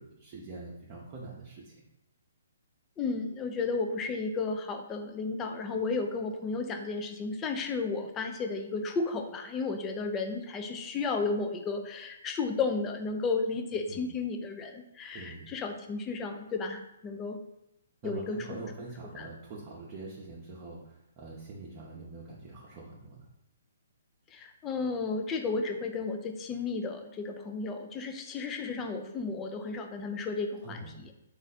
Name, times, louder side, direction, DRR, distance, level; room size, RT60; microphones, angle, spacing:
voice 1, 0.0-1.7 13.9-14.1 15.1-15.5 18.0-23.3 30.6-31.0, right 2 dB, 35° right, -5 dB, 0.7 m, -44 dB
voice 2, 3.0-17.4 18.0-18.6 19.2-19.3 24.3-31.1, left 4 dB, 20° left, 5 dB, 0.4 m, -33 dB
3.1 x 2.5 x 4.0 m, 0.87 s
hypercardioid pair, 135°, 0 cm